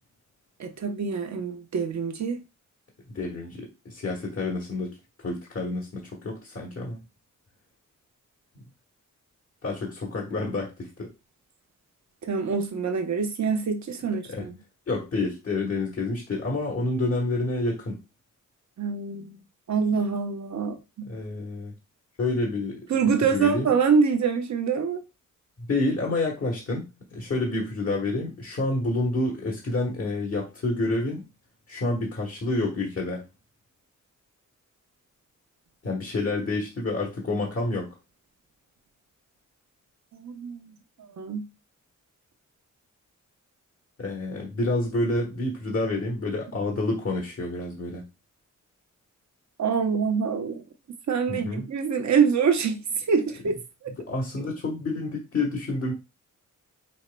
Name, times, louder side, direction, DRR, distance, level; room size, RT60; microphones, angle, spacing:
voice 1, 0.6-2.4 12.2-14.5 18.8-19.4 19.7-21.1 22.9-25.0 40.1-40.7 41.2-41.5 49.6-50.6 51.1-53.5 53.8-53.9, right 6 dB, 60° right, 0.9 m, -25 dB
voice 2, 3.1-7.0 8.5-8.6 9.6-11.1 14.3-14.5 14.9-18.0 21.0-21.8 22.2-23.7 25.6-31.2 31.7-33.3 35.8-38.0 44.0-48.0 51.3-51.7 54.0-55.9, left 2 dB, 45° left, 1.2 m, -29 dB
5.4 x 4.2 x 2.2 m
wide cardioid pair, 140°, 32 cm